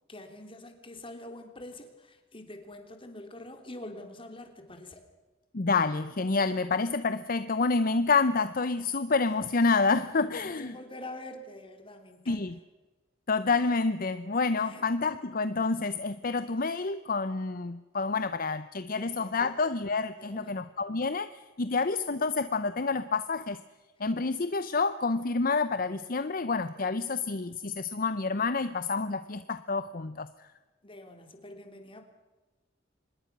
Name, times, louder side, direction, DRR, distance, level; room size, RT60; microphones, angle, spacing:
voice 1, 0.1-5.0 10.1-12.5 14.6-14.9 18.9-19.5 20.2-20.6 30.8-32.0, left 1 dB, 30° left, 5 dB, 3.2 m, -45 dB
voice 2, 5.5-10.8 12.3-12.6 13.3-23.6 24.0-30.3, left 4 dB, 50° left, 12 dB, 0.8 m, -28 dB
25.5 x 21.0 x 6.1 m, 1.2 s
head